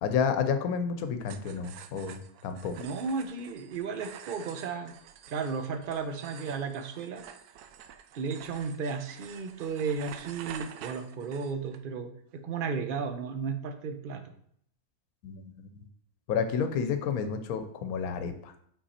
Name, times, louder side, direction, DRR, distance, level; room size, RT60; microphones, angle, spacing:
voice 1, 0.0-2.7 15.2-15.8 16.3-18.5, left 6 dB, 75° left, 9 dB, 1.2 m, -30 dB
sound 1, 1.2-11.8, right 9 dB, 85° right, 1.1 m, -48 dB
voice 2, 2.8-4.9 5.3-7.2 8.1-14.3, right 5 dB, 50° right, 8 dB, 0.6 m, -34 dB
5.5 x 5.4 x 4.2 m, 0.66 s
omnidirectional pair, 1.6 m